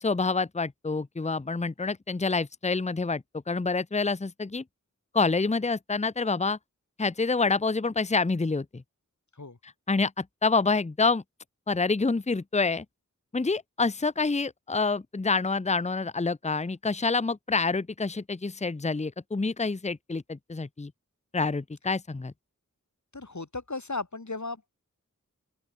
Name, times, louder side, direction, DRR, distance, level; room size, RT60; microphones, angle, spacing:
voice 1, 0.0-4.6 5.1-6.6 7.0-8.8 9.9-11.2 11.7-12.8 13.3-20.9 21.3-22.3, left 4 dB, 20° left, 0.7 m, -27 dB
voice 2, 23.1-24.7, left 3 dB, 65° left, 4.3 m, -36 dB
open air
wide cardioid pair, 50°, 32 cm